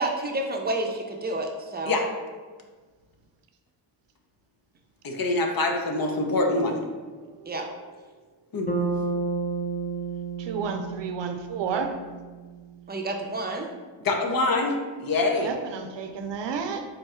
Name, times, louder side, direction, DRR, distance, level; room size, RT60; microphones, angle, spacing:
voice 1, 0.0-1.9 7.5-7.7 12.9-13.7, right 2 dB, 20° right, 2 dB, 0.5 m, -29 dB
voice 2, 5.0-6.8 8.5-8.7 14.0-15.5, left 2 dB, 50° left, 2 dB, 0.7 m, -25 dB
Bass guitar, 8.7-13.0, right 4 dB, 20° left, 0.6 m, -31 dB
voice 3, 10.4-11.9 15.4-16.8, right 5 dB, 75° right, 6 dB, 0.5 m, -31 dB
3.8 x 2.2 x 4.2 m, 1.4 s
cardioid pair, 80°, 44 cm